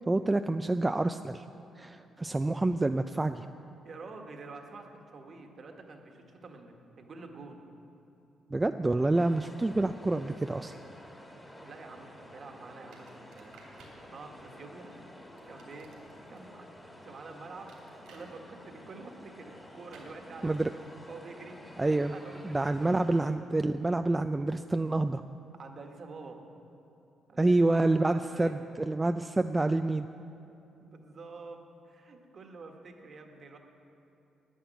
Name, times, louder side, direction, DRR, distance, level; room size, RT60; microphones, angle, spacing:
voice 1, 0.0-1.4 1.8-3.5 8.5-10.8 20.4-20.7 21.8-22.1 22.4-25.2 27.4-30.1, right 2 dB, 15° right, 8 dB, 0.3 m, -27 dB
voice 2, 3.8-7.6 11.6-13.5 14.0-15.0 15.5-15.9 16.3-16.7 17.0-20.8 21.1-21.6 22.0-23.4 25.5-26.4 27.3-28.6 30.9-33.6, right 3 dB, 45° right, 3 dB, 1.5 m, -48 dB
sound 1, 9.1-23.3, equal, 10° left, 1.7 m, -51 dB
sound 2, 12.9-14.0 15.4-16.4 17.7-18.3 19.9-20.1, right 3 dB, 85° right, 3.1 m, -56 dB
10.5 x 9.9 x 9.2 m, 2.9 s
cardioid pair, 115°, 0 cm